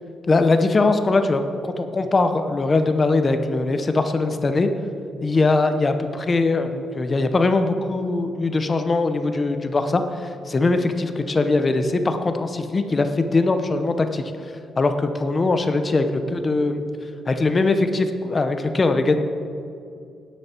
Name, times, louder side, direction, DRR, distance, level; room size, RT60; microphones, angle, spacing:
voice 1, 0.3-4.7 5.2-14.2 14.8-16.8 17.3-19.2, left 3 dB, 20° left, 8 dB, 0.7 m, -21 dB
17.0 x 10.5 x 4.4 m, 2.5 s
cardioid pair, 180°, 0 cm